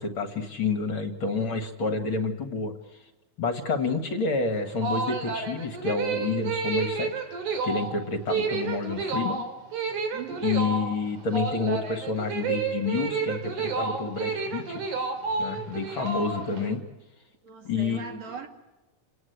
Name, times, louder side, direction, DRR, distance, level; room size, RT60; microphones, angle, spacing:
voice 1, 0.0-2.7 3.4-9.4 10.4-14.8 15.4-16.8 17.6-18.2, left 4 dB, 45° left, 2.4 m, -29 dB
sound 1, 4.6-16.7, right 4 dB, 80° right, 4.5 m, -30 dB
voice 2, 10.1-10.5 17.4-18.5, right 5 dB, 60° right, 3.5 m, -40 dB
29.0 x 19.0 x 8.2 m
omnidirectional pair, 3.5 m